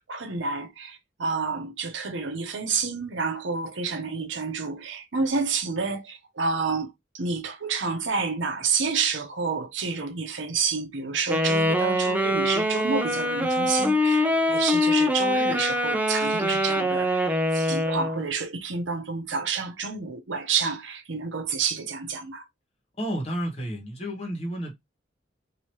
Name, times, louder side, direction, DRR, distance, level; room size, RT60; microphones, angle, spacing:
voice 1, 0.0-22.4, right 5 dB, 75° right, 0.8 m, -29 dB
Wind instrument woodwind instrument, 11.3-18.2, left 1 dB, 10° right, 0.4 m, -24 dB
voice 2, 23.0-24.7, equal, 35° left, 1.3 m, -31 dB
2.9 x 2.8 x 3.0 m
head